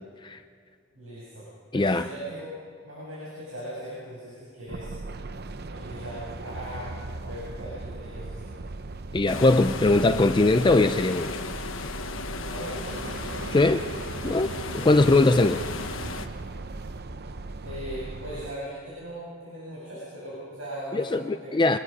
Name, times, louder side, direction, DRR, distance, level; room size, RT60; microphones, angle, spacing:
voice 1, 0.9-1.5 1.7-2.5 2.8-4.9 5.7-8.5 12.4-13.0 17.6-21.7, equal, 85° right, -7 dB, 7.4 m, -39 dB
voice 2, 1.7-2.1 9.1-11.3 13.5-13.8 14.2-15.6 20.9-21.8, left 2 dB, 25° left, 9 dB, 0.5 m, -21 dB
sound 1, 4.7-18.6, right 2 dB, 55° right, 0.7 m, -38 dB
sound 2, 9.3-16.3, left 4 dB, 80° left, 1.3 m, -35 dB
25.0 x 21.0 x 5.4 m, 2.1 s
head